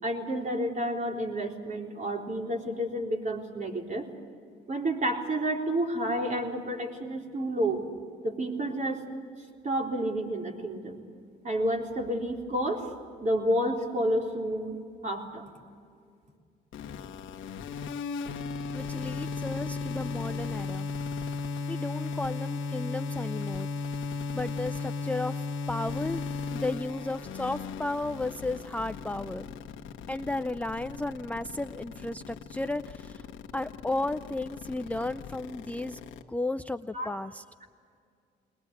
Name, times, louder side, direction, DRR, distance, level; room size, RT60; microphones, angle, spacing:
voice 1, 0.0-4.1 4.7-7.8 8.2-9.0 9.6-11.0 11.4-12.9 13.2-14.8 15.0-15.4 36.9-37.1, right 1 dB, 40° right, 1 dB, 4.0 m, -30 dB
sound 1, 16.7-36.2, left 4 dB, 75° left, 1.4 m, -36 dB
voice 2, 18.7-20.9 21.7-23.7 24.3-26.2 26.5-29.5 30.1-33.3 33.5-36.0 36.3-37.4, left 2 dB, 5° left, 9 dB, 0.5 m, -34 dB
21.5 x 21.0 x 8.4 m, 2.2 s
cardioid pair, 90°, 20 cm